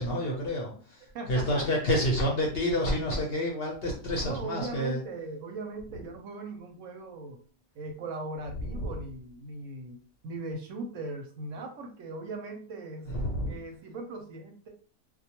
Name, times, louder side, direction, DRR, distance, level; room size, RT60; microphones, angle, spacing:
voice 1, 0.0-1.0 1.3-5.0 8.8-8.9 13.1-13.5, equal, 55° left, -1 dB, 0.7 m, -28 dB
voice 2, 1.1-1.7 4.2-7.4 7.8-10.0 10.2-13.1 13.5-14.7, right 3 dB, 70° right, 3 dB, 0.9 m, -39 dB
2.3 x 2.2 x 2.8 m, 0.42 s
omnidirectional pair, 1.5 m